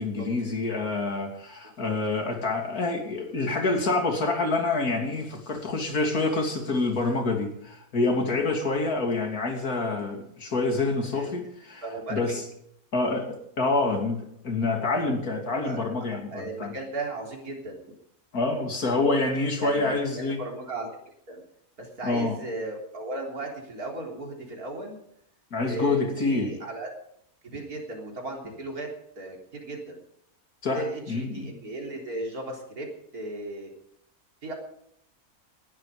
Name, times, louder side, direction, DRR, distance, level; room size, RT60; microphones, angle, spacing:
voice 1, 0.0-11.8 12.1-12.4 12.9-16.8 18.3-20.4 22.0-22.4 25.5-26.6 30.6-31.5, left 3 dB, 75° left, 3 dB, 3.4 m, -27 dB
voice 2, 11.1-11.4 11.8-12.4 15.5-17.8 19.6-21.4 21.8-25.0 25.6-26.9 27.4-28.9 29.2-30.0 30.7-32.9 33.1-33.7 34.4-34.5, right 2 dB, 70° right, 0 dB, 4.2 m, -36 dB
19.0 x 12.0 x 5.1 m, 0.73 s
omnidirectional pair, 1.6 m